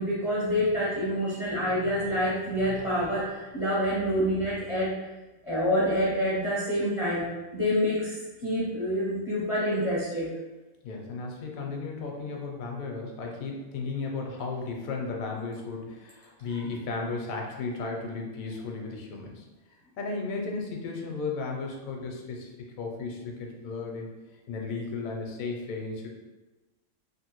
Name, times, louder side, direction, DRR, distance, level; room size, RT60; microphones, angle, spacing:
voice 1, 0.0-4.9 5.4-7.3 7.5-10.3, equal, 35° left, -8 dB, 0.5 m, -27 dB
voice 2, 10.8-19.4 20.0-24.1 24.5-26.1, left 4 dB, 75° left, 1 dB, 1.0 m, -35 dB
3.3 x 2.5 x 2.9 m, 1.1 s
omnidirectional pair, 1.5 m